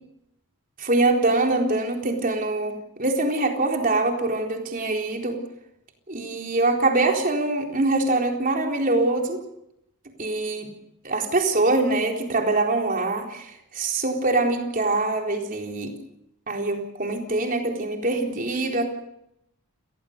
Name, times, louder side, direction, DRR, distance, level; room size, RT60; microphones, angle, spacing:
voice 1, 0.8-5.4 6.1-9.4 10.2-10.7 11.0-15.9 16.5-18.9, right 2 dB, 40° right, 2 dB, 4.0 m, -24 dB
29.5 x 19.5 x 6.7 m, 0.80 s
head